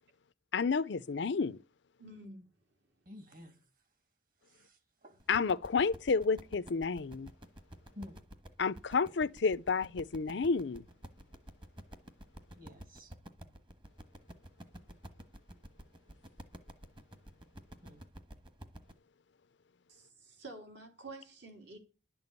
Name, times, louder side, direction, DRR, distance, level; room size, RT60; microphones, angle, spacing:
voice 1, 0.5-1.6 5.3-7.3 8.6-10.8, left 5 dB, 70° left, 0.5 m, -30 dB
voice 2, 2.0-2.5 19.9-21.8, right 2 dB, 70° right, 3.8 m, -49 dB
voice 3, 3.1-3.6 4.5-5.2 7.9-8.2 12.6-13.1 17.8-18.0, left 1 dB, 45° right, 2.8 m, -51 dB
sound 1, 5.2-18.9, equal, 25° right, 1.3 m, -51 dB
11.5 x 7.0 x 8.2 m
head